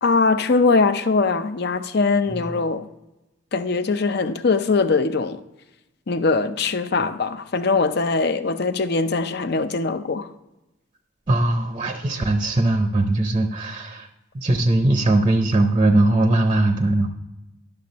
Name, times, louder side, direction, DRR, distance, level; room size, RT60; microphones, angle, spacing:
voice 1, 0.0-2.9 3.5-5.4 6.1-10.3, left 4 dB, 50° left, 0.5 m, -21 dB
voice 2, 11.3-14.1 14.3-17.1, right 2 dB, 25° right, 0.5 m, -20 dB
11.0 x 6.7 x 4.1 m
head